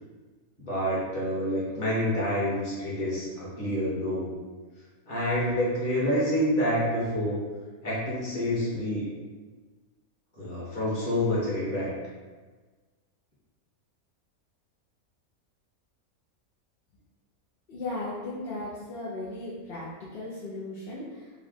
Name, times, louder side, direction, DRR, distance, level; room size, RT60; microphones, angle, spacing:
voice 1, 0.6-4.3 5.1-7.4 7.8-9.1 10.4-11.9, equal, 35° left, -8 dB, 1.4 m, -28 dB
voice 2, 17.7-21.3, left 2 dB, 55° left, -7 dB, 0.7 m, -36 dB
3.9 x 2.3 x 4.1 m, 1.4 s
omnidirectional pair, 1.5 m